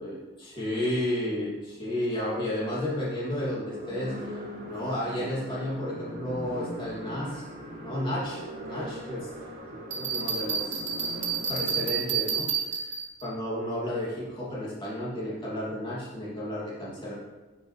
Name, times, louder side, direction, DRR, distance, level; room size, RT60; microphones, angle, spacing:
voice 1, 0.0-4.1 4.7-7.5 7.8-9.3 9.9-10.8 11.5-12.9 13.2-17.1, left 1 dB, 25° left, -7 dB, 2.7 m, -32 dB
sound 1, 2.3-11.9, equal, 45° right, 2.5 m, -41 dB
Bell, 9.9-13.3, right 7 dB, 60° right, 2.1 m, -30 dB
10.5 x 8.7 x 3.4 m, 1.2 s
head